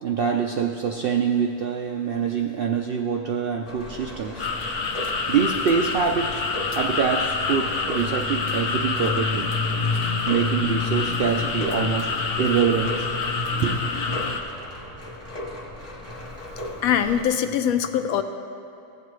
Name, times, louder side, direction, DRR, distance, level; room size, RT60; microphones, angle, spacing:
voice 1, 0.0-4.5 5.3-6.4 6.8-9.5 10.3-12.1 12.4-13.1 13.6-13.8, right 6 dB, 70° right, 2 dB, 0.5 m, -25 dB
sound 1, 3.7-17.3, left 1 dB, 15° left, 0.8 m, -37 dB
sound 2, 4.4-14.4, left 4 dB, 50° left, 0.8 m, -26 dB
voice 2, 16.8-18.2, left 9 dB, 85° left, 8 dB, 1.1 m, -22 dB
15.5 x 8.1 x 3.1 m, 2.8 s
omnidirectional pair, 1.5 m